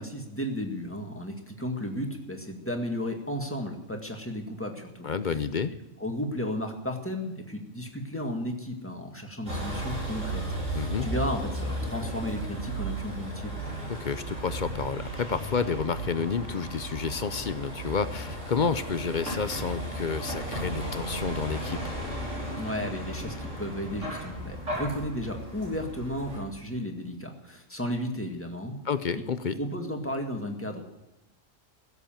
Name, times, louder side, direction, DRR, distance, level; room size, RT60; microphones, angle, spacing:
voice 1, 0.0-5.1 6.0-10.4 10.7-13.6 22.6-28.8 29.5-30.8, equal, 10° left, 3 dB, 1.9 m, -34 dB
voice 2, 5.0-5.7 10.7-11.1 13.9-21.9 28.8-29.6, left 5 dB, 45° left, 12 dB, 0.7 m, -30 dB
Vehicle, 9.5-26.4, right 1 dB, 75° right, 6.0 m, -35 dB
16.0 x 8.2 x 9.0 m, 0.89 s
omnidirectional pair, 1.3 m